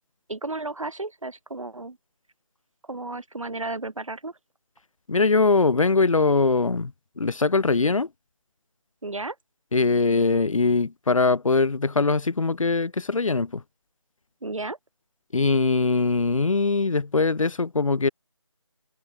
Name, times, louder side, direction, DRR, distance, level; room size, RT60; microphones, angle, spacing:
voice 1, 0.3-2.0 2.9-4.4 9.0-9.4 14.4-14.8, right 2 dB, 80° right, 2.4 m, -33 dB
voice 2, 5.1-6.9 7.2-8.1 9.7-13.6 15.3-18.1, left 3 dB, 90° left, 0.8 m, -22 dB
figure-of-eight pair, 175°, 16 cm